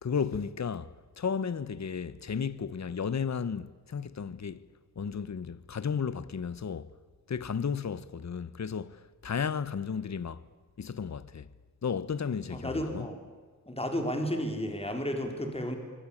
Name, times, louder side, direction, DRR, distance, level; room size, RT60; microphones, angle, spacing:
voice 1, 0.0-4.6 5.0-6.9 7.3-10.4 10.8-11.5 11.8-13.1, left 6 dB, 55° left, 1.0 m, -33 dB
voice 2, 12.5-13.2 13.7-15.8, equal, 15° left, 4.3 m, -32 dB
25.5 x 24.5 x 8.6 m
wide cardioid pair, 100°, 34 cm